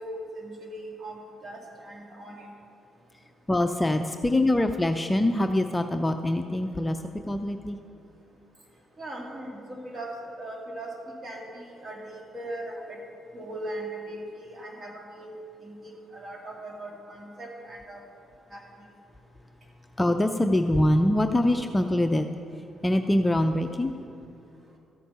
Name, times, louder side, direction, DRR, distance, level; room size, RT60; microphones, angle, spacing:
voice 1, 0.0-2.5 9.0-10.9 11.2-13.0 13.3-15.3 15.6-18.0 18.5-18.6, right 1 dB, 40° right, -1 dB, 2.7 m, -39 dB
voice 2, 3.5-7.0 7.3-7.8 20.0-22.3 22.8-23.9, left 1 dB, 15° left, 6 dB, 0.5 m, -24 dB
13.0 x 8.3 x 5.5 m, 2.6 s
cardioid pair, 90°, 0 cm